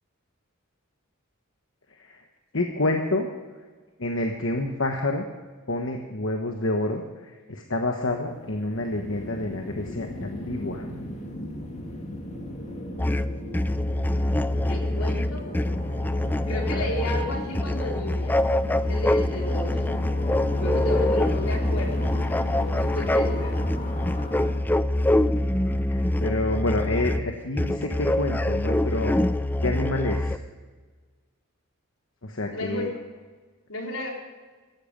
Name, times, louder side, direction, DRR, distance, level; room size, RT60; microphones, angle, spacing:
voice 1, 1.9-2.2 2.5-3.3 4.0-5.2 5.7-10.9 16.7-16.9 25.5-29.2 29.6-30.4 32.2-32.9, left 2 dB, 60° left, 3 dB, 1.2 m, -28 dB
sound 1, 8.1-24.6, left 1 dB, 30° left, 2.1 m, -36 dB
sound 2, 13.0-30.4, left 1 dB, 10° left, 0.3 m, -25 dB
voice 2, 14.1-15.5 16.5-18.4 18.9-19.8 20.6-23.6 32.5-33.0 33.7-34.1, left 1 dB, 80° left, 0 dB, 3.8 m, -33 dB
17.5 x 14.0 x 5.2 m, 1.4 s
head